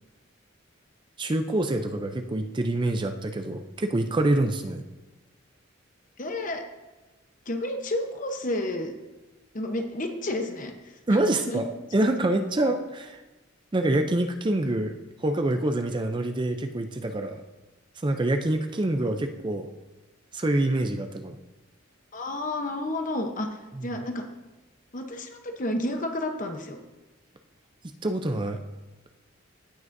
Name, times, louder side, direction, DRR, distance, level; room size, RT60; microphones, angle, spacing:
voice 1, 1.2-4.8 11.1-13.2 13.7-14.9 15.2-17.4 18.0-19.7 20.3-21.3 23.7-23.9 28.0-28.6, right 1 dB, 25° right, 6 dB, 0.5 m, -26 dB
voice 2, 6.2-6.6 7.5-8.9 9.5-10.7 11.1-11.6 22.1-23.5 23.8-24.2 24.9-26.8, left 1 dB, 40° left, 4 dB, 0.9 m, -31 dB
16.5 x 6.1 x 2.7 m, 1.1 s
head